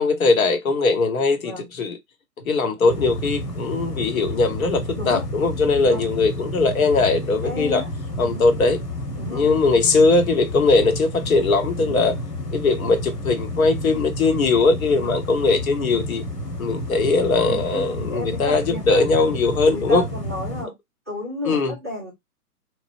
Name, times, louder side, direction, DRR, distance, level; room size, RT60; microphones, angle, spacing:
voice 1, 0.0-2.0 2.4-7.8 8.2-8.8 9.3-12.2 12.5-16.2 16.6-20.0 21.4-21.7, left 3 dB, 60° left, 0.9 m, -20 dB
sound 1, 2.9-20.6, left 1 dB, 85° left, 1.3 m, -31 dB
voice 2, 4.7-5.2 5.8-6.1 7.4-7.9 8.2-8.5 9.2-9.5 11.8-12.1 14.9-15.2 17.4-19.3 19.7-20.7 21.1-22.1, left 1 dB, 10° right, 0.4 m, -33 dB
3.2 x 2.0 x 2.4 m
figure-of-eight pair, 120°, 47 cm